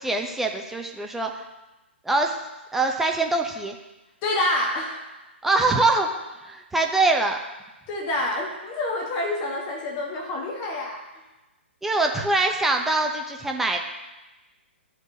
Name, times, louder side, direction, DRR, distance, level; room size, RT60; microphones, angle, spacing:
voice 1, 0.0-1.4 2.0-2.4 2.7-3.8 5.4-6.1 6.4-7.4 11.8-13.8, right 2 dB, 5° right, 2 dB, 0.7 m, -23 dB
voice 2, 4.2-5.1 7.9-11.0, left 1 dB, 30° left, 0 dB, 1.4 m, -27 dB
13.0 x 4.5 x 2.8 m, 1.1 s
figure-of-eight pair, 120°, 6 cm